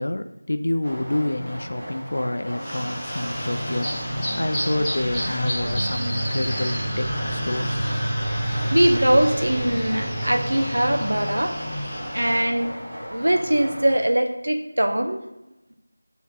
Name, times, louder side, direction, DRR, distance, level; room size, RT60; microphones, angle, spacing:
voice 1, 0.0-7.9, left 1 dB, 65° left, 9 dB, 0.3 m, -28 dB
sound 1, 0.8-14.0, equal, 15° right, 1.1 m, -36 dB
sound 2, 2.6-12.5, equal, 5° left, 0.7 m, -28 dB
voice 2, 8.7-11.6 12.1-12.7 13.1-15.2, right 1 dB, 85° right, 6 dB, 0.6 m, -21 dB
4.1 x 3.1 x 4.2 m, 0.97 s
figure-of-eight pair, 175°, 0 cm